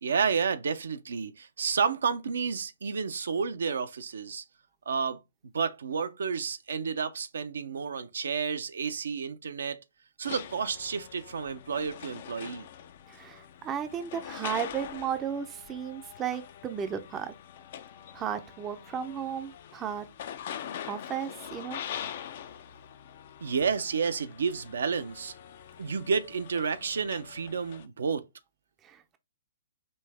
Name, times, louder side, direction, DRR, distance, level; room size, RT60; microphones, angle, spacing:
voice 1, 0.0-4.4 4.9-5.2 5.5-9.8 10.2-12.7 23.4-25.3 25.8-28.2, right 6 dB, 60° right, 0.6 m, -30 dB
sound 1, 10.2-27.9, left 9 dB, 45° left, 0.5 m, -44 dB
voice 2, 13.1-17.3 18.1-20.1 20.8-21.8 28.8-29.2, right 8 dB, 20° right, 0.6 m, -34 dB
5.4 x 2.7 x 3.2 m
figure-of-eight pair, 120°, 0 cm